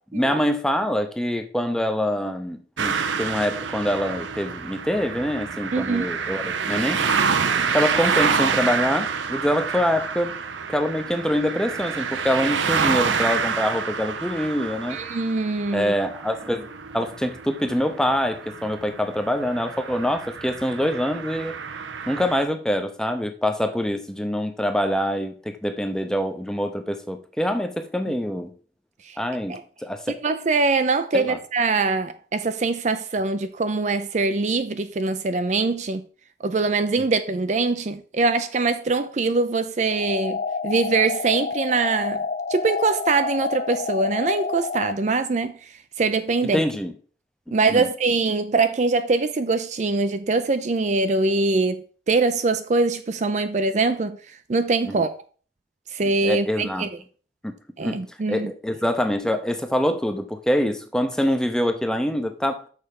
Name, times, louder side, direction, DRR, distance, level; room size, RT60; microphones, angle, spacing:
voice 1, 0.1-7.0 7.7-10.3 10.7-15.0 15.7-16.7 16.9-21.6 22.1-28.5 29.2-30.2 31.1-31.4 46.4-46.9 47.5-47.9 54.8-55.0 56.2-56.9 57.4-57.5 57.8-58.0 58.3-62.7, equal, 5° left, 0.6 m, -25 dB
sound 1, 2.8-22.4, right 6 dB, 90° right, 0.7 m, -28 dB
voice 2, 5.7-6.1 14.9-15.9 28.1-28.2 29.1-29.2 29.5-29.6 30.2-36.0 36.4-40.4 40.6-42.2 42.5-45.5 46.0-46.6 47.5-54.2 54.5-55.1 55.9-56.9 57.8-58.5, right 3 dB, 40° right, 0.4 m, -23 dB
sound 2, 39.9-44.9, left 5 dB, 45° left, 0.4 m, -29 dB
6.6 x 4.5 x 5.2 m
head